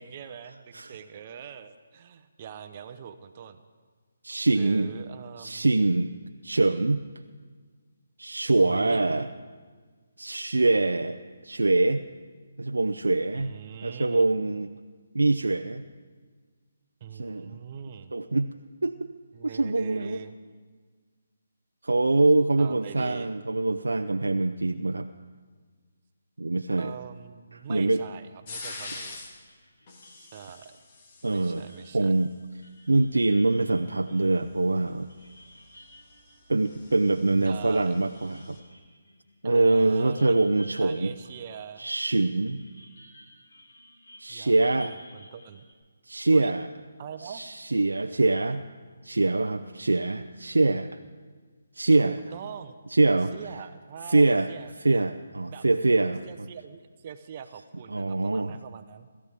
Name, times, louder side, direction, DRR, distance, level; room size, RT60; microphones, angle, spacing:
voice 1, 0.0-3.6 4.5-5.7 8.6-9.0 13.3-14.2 17.0-18.1 19.3-20.4 22.6-23.3 26.8-29.2 30.2-30.7 31.3-32.1 37.4-38.0 39.4-40.4 40.8-41.9 44.3-45.6 46.3-46.5 47.0-47.4 52.0-52.8 53.3-55.1 55.5-55.7 56.2-59.1, right 8 dB, 35° right, 9 dB, 0.9 m, -43 dB
voice 2, 4.2-4.9 5.4-6.1 6.4-7.0 8.2-9.3 10.2-11.2 11.4-12.0 12.6-13.5 13.8-14.7 15.1-15.8 17.1-17.6 18.1-18.5 18.8-19.1 19.4-20.2 21.8-25.1 26.4-26.9 27.5-28.0 28.9-29.0 31.2-31.7 31.9-32.3 32.9-35.1 36.5-38.6 39.4-41.1 41.8-42.6 44.2-44.9 46.1-46.7 47.2-48.7 49.0-51.0 51.8-52.2 52.9-53.3 54.1-54.5 54.8-56.3 57.9-58.6, right 2 dB, 85° right, 7 dB, 0.6 m, -24 dB
sound 1, 28.5-29.4 29.9-31.9 34.5-38.6, left 3 dB, 40° left, 2.3 m, -45 dB
sound 2, 28.8-41.9 42.3-45.7, equal, 85° left, 5.0 m, -55 dB
26.0 x 14.0 x 3.6 m, 1.5 s
figure-of-eight pair, 150°, 0 cm